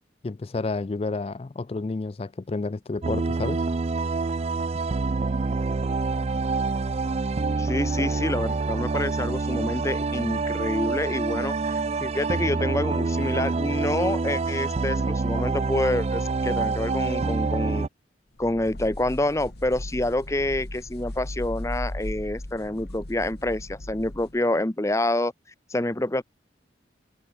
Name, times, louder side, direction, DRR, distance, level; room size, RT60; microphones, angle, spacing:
voice 1, 0.2-3.7, left 3 dB, 30° left, 0.4 m, -30 dB
sound 1, 3.0-17.9, right 3 dB, 35° right, 0.4 m, -26 dB
voice 2, 7.6-17.8 18.4-25.3 25.7-26.2, left 1 dB, 15° left, 0.7 m, -27 dB
sound 2, 18.4-24.4, left 1 dB, 55° left, 2.0 m, -37 dB
head